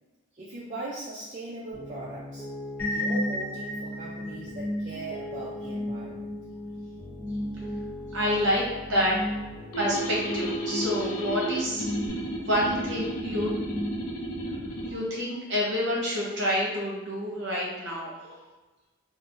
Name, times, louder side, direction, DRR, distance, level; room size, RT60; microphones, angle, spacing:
voice 1, 0.4-2.5 2.9-6.3 8.3-8.7 9.6-9.8 14.8-15.7 18.2-18.6, right 2 dB, 35° right, -7 dB, 0.4 m, -40 dB
Piano, 1.7-12.1, left 2 dB, 30° left, 0.9 m, -41 dB
sound 1, 2.8-14.4, equal, 5° left, 1.0 m, -35 dB
voice 2, 8.1-9.2 9.8-11.9 12.4-13.5 14.9-18.1, equal, 55° right, -4 dB, 0.9 m, -28 dB
sound 2, 9.7-15.0, right 1 dB, 80° left, 0.6 m, -33 dB
2.5 x 2.1 x 3.7 m, 1.2 s
head